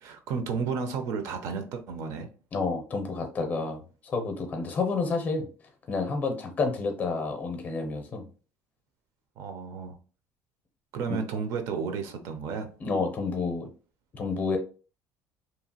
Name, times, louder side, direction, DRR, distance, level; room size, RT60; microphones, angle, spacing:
voice 1, 0.0-2.3 9.4-10.0 10.9-12.7, right 5 dB, 60° right, 0.5 m, -32 dB
voice 2, 2.5-5.5 5.9-8.2 11.1-11.2 12.8-13.7 14.1-14.6, left 4 dB, 30° left, 0.6 m, -29 dB
2.8 x 2.3 x 2.7 m
cardioid pair, 170°, 6 cm